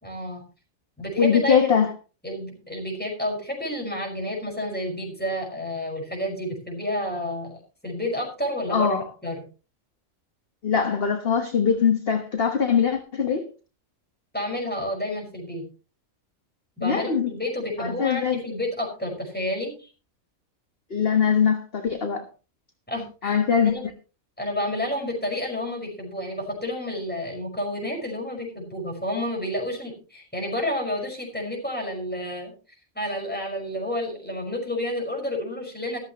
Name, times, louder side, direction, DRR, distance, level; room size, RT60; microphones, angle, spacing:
voice 1, 0.0-0.4 1.0-1.8 2.2-9.0 9.2-9.4 14.3-15.6 16.8-19.9 22.9-23.9 24.4-32.5 33.0-36.0, left 1 dB, 5° left, 0 dB, 5.5 m, -30 dB
voice 2, 1.2-1.9 8.7-9.0 10.6-13.5 16.8-17.3 17.8-18.4 20.9-22.3 23.2-23.7, left 7 dB, 45° left, 5 dB, 1.4 m, -22 dB
14.5 x 13.5 x 3.1 m, 0.34 s
omnidirectional pair, 1.4 m